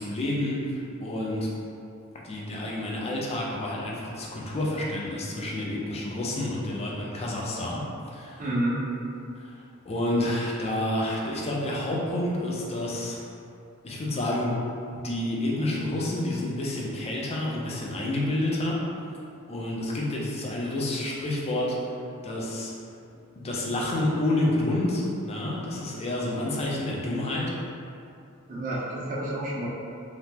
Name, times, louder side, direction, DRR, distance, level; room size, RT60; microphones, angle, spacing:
voice 1, 0.0-1.5 2.2-7.8 8.1-8.4 9.4-13.2 13.8-14.5 15.0-18.8 19.5-21.8 22.2-22.7 23.4-27.5, left 1 dB, 30° left, -4 dB, 0.5 m, -29 dB
voice 2, 8.4-8.8 28.5-29.7, right 1 dB, 40° right, -6 dB, 0.6 m, -29 dB
2.8 x 2.1 x 3.4 m, 2.5 s
head